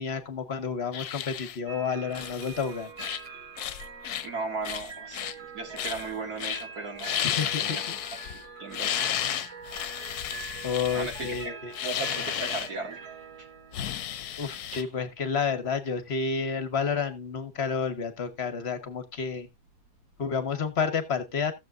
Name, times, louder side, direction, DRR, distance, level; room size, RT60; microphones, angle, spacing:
voice 1, 0.0-2.9 7.2-7.8 10.6-11.7 14.4-19.5 20.2-21.5, left 6 dB, 45° left, 1.2 m, -30 dB
sound 1, 0.9-1.6 2.1-2.6 3.0-3.3 3.6-4.3 4.6-5.3 5.8-6.1 6.4-6.6 7.0-8.4 8.7-12.7 13.7-14.8, left 11 dB, 75° left, 1.2 m, -33 dB
sound 2, 1.7-20.7, right 5 dB, 80° right, 3.8 m, -44 dB
voice 2, 4.2-8.0 8.3-9.1 10.9-11.4 11.8-13.0, right 3 dB, 65° right, 2.7 m, -37 dB
16.0 x 7.1 x 2.5 m
omnidirectional pair, 1.7 m